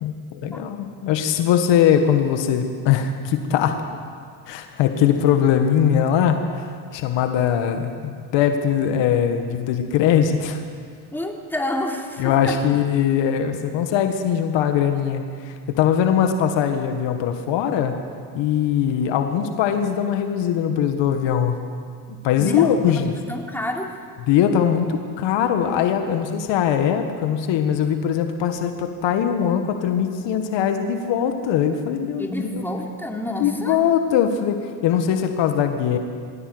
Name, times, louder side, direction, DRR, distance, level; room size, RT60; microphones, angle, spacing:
voice 1, 0.0-3.8 4.5-10.6 12.2-18.0 18.3-21.6 22.2-23.2 24.3-32.5 33.4-36.0, left 8 dB, 70° left, 6 dB, 1.8 m, -21 dB
voice 2, 11.1-12.6 22.4-23.9 32.2-33.8, left 1 dB, 5° left, 1 dB, 3.4 m, -29 dB
21.0 x 16.5 x 7.9 m, 2.1 s
supercardioid pair, 70°, 46 cm